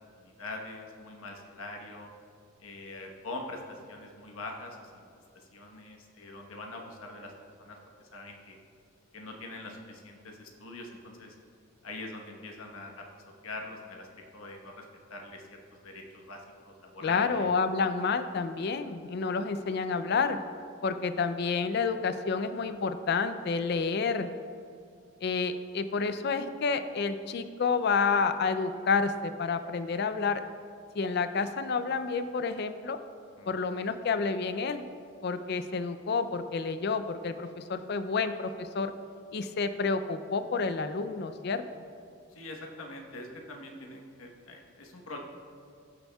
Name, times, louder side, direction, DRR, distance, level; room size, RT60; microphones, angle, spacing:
voice 1, 0.2-2.1 2.6-5.0 5.3-7.3 7.6-8.6 9.1-11.3 11.8-13.1 13.4-14.1 14.3-17.5 33.4-33.5 42.3-45.2, left 2 dB, 85° left, 1 dB, 1.2 m, -43 dB
voice 2, 17.0-20.4 20.8-24.3 25.2-30.4 31.0-33.0 33.5-34.8 35.2-38.9 39.3-41.6, left 4 dB, 50° left, 10 dB, 0.4 m, -29 dB
16.0 x 7.0 x 2.3 m, 2.3 s
head